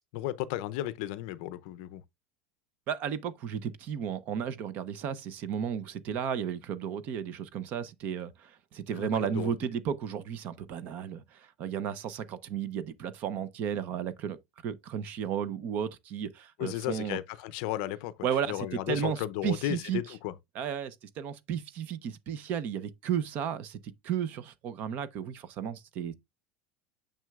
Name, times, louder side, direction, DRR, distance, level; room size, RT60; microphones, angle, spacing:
voice 1, 0.1-2.0 8.9-9.5 16.6-18.1 18.5-20.3, left 14 dB, 50° left, 0.5 m, -34 dB
voice 2, 2.9-3.2 3.5-3.6 3.9-5.1 5.4-7.2 7.5-8.3 8.9-11.2 11.6-11.9 12.5-12.8 13.2-14.4 14.6-16.3 16.6-17.2 18.2-18.5 18.9-19.2 19.4-20.0 20.6-20.9 21.2-22.0 22.3-22.8 23.1-23.6 24.1-24.3 24.6-25.2 25.6-26.1, right 8 dB, 35° right, 0.6 m, -32 dB
6.6 x 6.2 x 2.3 m
cardioid pair, 180°, 5 cm